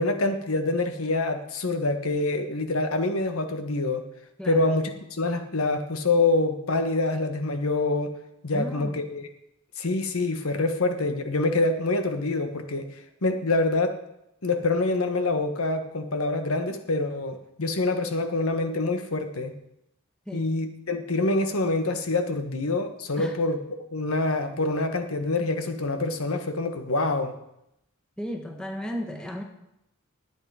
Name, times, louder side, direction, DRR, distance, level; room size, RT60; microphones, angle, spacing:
voice 1, 0.0-4.0 4.5-8.1 8.4-9.3 9.8-14.0 14.4-19.5 20.3-23.6 23.9-27.3, left 2 dB, 90° left, 7 dB, 1.4 m, -26 dB
voice 2, 4.4-4.7 8.5-9.1 20.3-20.6 23.1-23.4 28.2-29.4, equal, 5° left, 1 dB, 1.9 m, -35 dB
20.0 x 8.7 x 4.9 m, 0.83 s
head